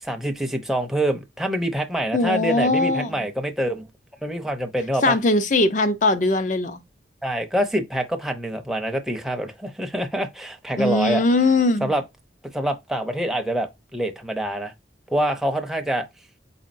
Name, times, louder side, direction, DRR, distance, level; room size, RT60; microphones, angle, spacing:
voice 1, 0.0-3.9 4.2-5.2 7.2-11.2 11.8-12.0 12.5-14.7 15.1-16.1, right 1 dB, ahead, 0.6 m, -25 dB
voice 2, 2.1-3.2 5.0-6.8 10.8-11.9, left 2 dB, 40° left, 0.6 m, -20 dB
4.5 x 4.2 x 2.5 m
head